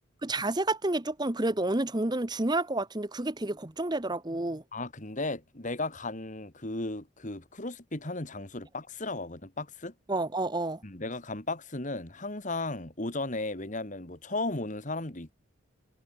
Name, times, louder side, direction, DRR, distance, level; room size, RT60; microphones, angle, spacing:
voice 1, 0.2-4.6 10.1-10.8, right 2 dB, 20° right, 1.0 m, -29 dB
voice 2, 4.7-9.9 10.8-15.3, left 2 dB, 35° left, 2.3 m, -35 dB
head